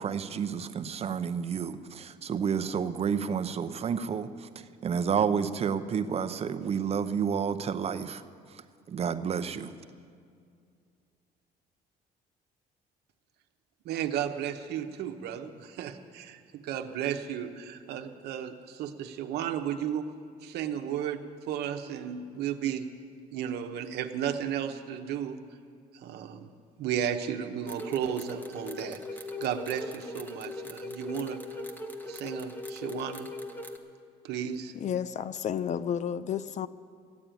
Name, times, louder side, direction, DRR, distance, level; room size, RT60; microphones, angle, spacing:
voice 1, 0.0-8.2 8.5-8.6 8.9-9.7, right 7 dB, 35° right, 10 dB, 0.7 m, -30 dB
voice 2, 13.8-20.1 20.4-22.9 23.3-25.4 25.9-26.5 26.8-31.4 32.1-33.3 34.2-34.7, right 9 dB, 75° right, 6 dB, 1.0 m, -34 dB
sound 1, 27.7-33.8, left 2 dB, 10° left, 1.1 m, -39 dB
voice 3, 34.7-36.7, left 8 dB, 45° left, 15 dB, 0.5 m, -31 dB
13.5 x 8.6 x 9.2 m, 2.3 s
cardioid pair, 110°, 17 cm